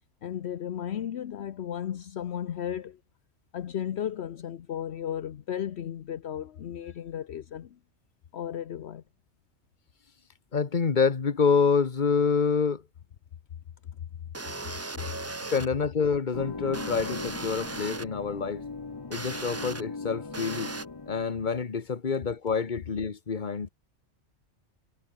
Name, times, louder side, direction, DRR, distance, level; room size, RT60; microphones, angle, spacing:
voice 1, 0.2-3.0 3.5-7.8 8.3-9.0, left 10 dB, 65° left, 1.0 m, -34 dB
voice 2, 10.5-12.8 15.5-18.6 19.1-20.7 21.1-23.7, left 5 dB, 40° left, 1.4 m, -27 dB
sound 1, 14.3-15.7 16.7-18.0 19.1-19.8 20.3-20.8, right 2 dB, 15° right, 0.6 m, -37 dB
sound 2, 16.3-21.5, left 4 dB, 25° left, 0.7 m, -39 dB
omnidirectional pair, 1.2 m